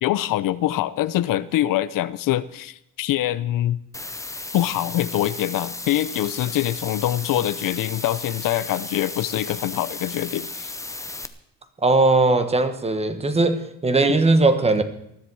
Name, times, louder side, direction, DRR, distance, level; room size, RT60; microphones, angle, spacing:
voice 1, 0.0-3.8 4.5-10.7 14.1-14.2, left 13 dB, 70° left, 16 dB, 0.7 m, -24 dB
sound 1, 3.9-11.2, left 2 dB, 10° left, 0.7 m, -35 dB
voice 2, 11.8-14.8, right 3 dB, 20° right, 9 dB, 1.2 m, -19 dB
20.0 x 13.0 x 4.8 m, 0.77 s
cardioid pair, 155°, 34 cm